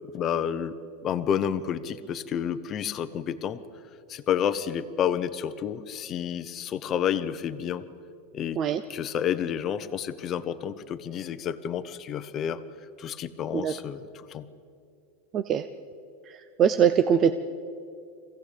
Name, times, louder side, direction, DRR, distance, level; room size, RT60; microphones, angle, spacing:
voice 1, 0.1-0.7 1.0-3.6 4.1-7.8 8.3-8.6 8.9-12.6 13.0-14.5, left 9 dB, 25° left, 11 dB, 0.8 m, -30 dB
voice 2, 15.3-15.7 16.3-17.3, right 8 dB, 25° right, 10 dB, 0.6 m, -22 dB
23.0 x 16.0 x 8.4 m, 2.4 s
supercardioid pair, 170°, 0 cm